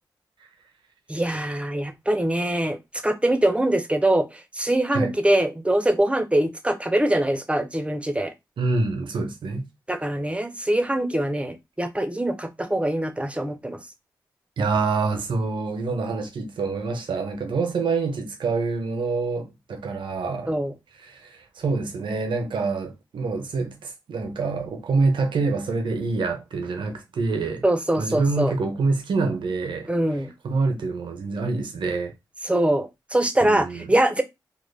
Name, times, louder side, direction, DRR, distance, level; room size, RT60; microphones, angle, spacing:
voice 1, 1.1-2.8 3.0-8.3 9.9-13.8 20.5-20.7 27.6-28.5 29.9-30.3 32.4-34.2, right 1 dB, 15° right, 0.6 m, -23 dB
voice 2, 8.6-9.7 14.6-20.5 21.0-27.7 28.0-29.9 30.4-32.1 33.4-33.9, right 3 dB, 85° right, 0.6 m, -26 dB
2.3 x 2.1 x 3.1 m
cardioid pair, 40°, 8 cm